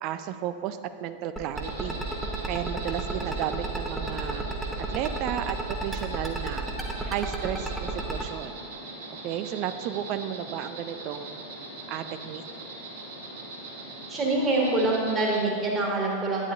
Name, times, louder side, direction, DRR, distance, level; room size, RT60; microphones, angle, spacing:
voice 1, 0.0-2.0 2.5-4.5 4.8-6.6 7.0-8.5 9.1-11.4 11.9-12.4, right 10 dB, 40° right, 11 dB, 0.4 m, -33 dB
sound 1, 1.4-8.2, right 2 dB, 5° right, 1.0 m, -32 dB
Insect, 1.5-15.4, right 2 dB, 60° right, 1.4 m, -41 dB
voice 2, 14.1-16.5, right 2 dB, 20° right, -3 dB, 1.9 m, -25 dB
9.9 x 9.7 x 2.7 m, 2.2 s
figure-of-eight pair, 90°, 0 cm